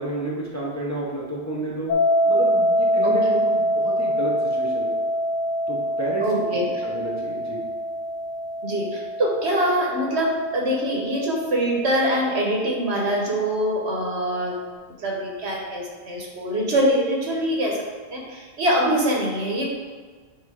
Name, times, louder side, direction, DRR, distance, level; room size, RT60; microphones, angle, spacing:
voice 1, 0.0-1.9 2.3-4.9 5.7-6.3 6.8-7.6, right 2 dB, 15° left, -5 dB, 0.8 m, -30 dB
sound 1, 1.9-12.8, equal, 85° left, 1.0 m, -25 dB
voice 2, 6.2-6.6 8.6-14.6 15.0-17.8 18.1-19.7, equal, 60° right, -2 dB, 1.2 m, -24 dB
7.7 x 2.7 x 4.8 m, 1.5 s
omnidirectional pair, 1.3 m